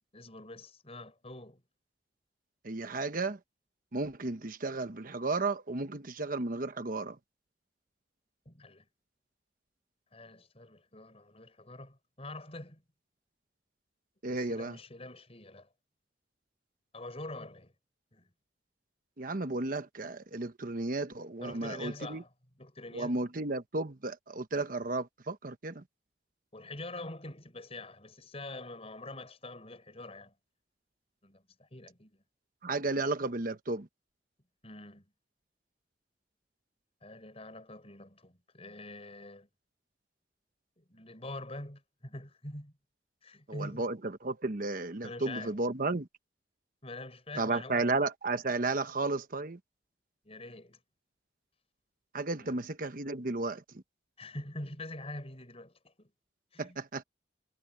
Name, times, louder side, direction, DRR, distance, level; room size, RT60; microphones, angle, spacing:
voice 1, 0.1-1.6 8.4-8.9 10.1-12.8 14.3-15.7 16.9-17.7 18.1-18.3 21.4-23.2 26.5-30.3 31.2-32.2 34.6-35.1 37.0-39.5 40.8-42.7 43.2-43.9 45.0-45.6 46.8-47.8 50.2-50.8 52.4-52.6 54.2-56.1 56.5-56.8, left 2 dB, 35° left, 6.6 m, -45 dB
voice 2, 2.6-3.4 3.9-7.2 14.2-14.8 19.2-22.2 22.9-25.8 32.6-33.9 43.5-44.0 44.2-46.1 47.4-49.6 52.1-53.6 56.6-57.0, right 3 dB, 50° right, 1.1 m, -33 dB
head